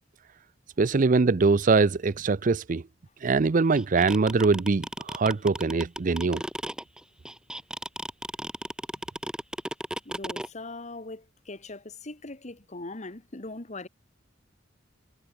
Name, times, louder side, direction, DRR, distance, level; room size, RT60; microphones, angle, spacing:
voice 1, 0.8-2.8 3.2-6.4, right 4 dB, 45° right, 0.5 m, -23 dB
sound 1, 3.8-10.5, right 1 dB, 5° right, 2.0 m, -34 dB
voice 2, 10.0-13.9, left 2 dB, 40° left, 1.7 m, -40 dB
head